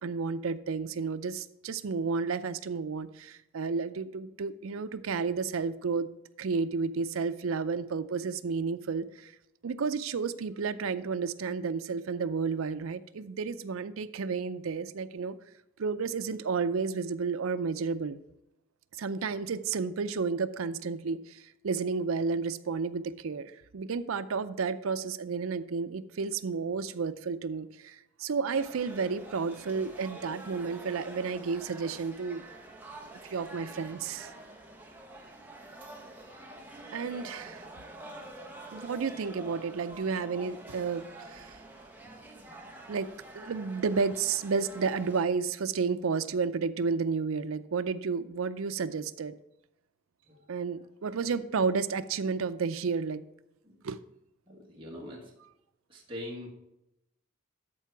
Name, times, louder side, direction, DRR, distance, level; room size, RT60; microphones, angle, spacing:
voice 1, 0.0-6.1 6.4-9.3 9.6-15.4 15.8-18.2 19.0-32.4 33.3-34.3 36.9-37.6 38.7-41.6 42.9-43.1 43.3-49.4 50.5-53.2 53.8-54.0, right 5 dB, 90° right, 12 dB, 0.5 m, -32 dB
sound 1, 28.5-45.2, right 2 dB, 10° right, 1.0 m, -47 dB
voice 2, 54.5-55.3 55.9-56.5, left 1 dB, 25° right, -4 dB, 1.6 m, -42 dB
13.5 x 4.6 x 4.6 m, 0.86 s
head